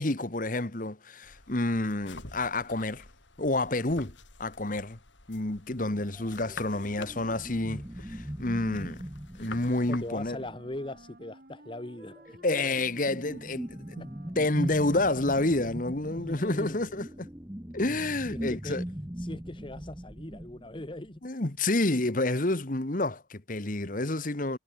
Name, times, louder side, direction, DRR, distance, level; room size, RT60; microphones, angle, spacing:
voice 1, 0.0-3.1 3.4-5.0 5.3-9.0 9.4-10.4 12.4-14.1 14.3-17.3 17.7-18.8 21.2-24.6, left 2 dB, 45° left, 1.5 m, -29 dB
sound 1, 1.2-10.1, left 3 dB, 80° left, 5.5 m, -49 dB
sound 2, 6.1-11.0 11.9-21.2, equal, 10° right, 1.1 m, -40 dB
Wind instrument woodwind instrument, 9.5-15.7, right 1 dB, 50° right, 4.8 m, -54 dB
voice 2, 9.9-12.2 14.0-14.1 16.2-16.9 18.3-18.8 19.2-21.2, left 1 dB, 25° left, 1.1 m, -40 dB
head